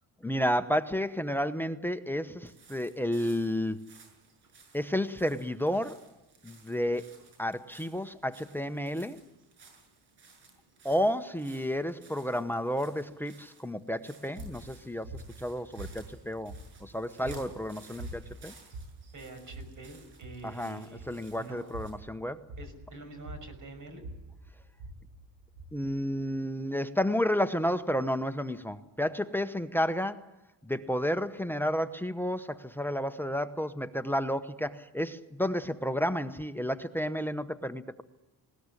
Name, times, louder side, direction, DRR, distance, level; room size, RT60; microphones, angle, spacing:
voice 1, 0.2-3.8 4.7-6.1 6.4-9.2 10.8-15.1 15.4-16.5 16.8-18.5 20.4-22.4 25.7-30.3 30.6-38.0, equal, 5° left, 13 dB, 0.9 m, -31 dB
sound 1, 2.4-21.9, right 4 dB, 70° right, 7.1 m, -58 dB
sound 2, 14.4-26.4, right 1 dB, 85° right, 7.9 m, -46 dB
voice 2, 19.1-21.8 22.6-24.0, right 2 dB, 45° right, 8 dB, 6.0 m, -46 dB
20.0 x 18.5 x 9.8 m, 1.0 s
cardioid pair, 120°, 41 cm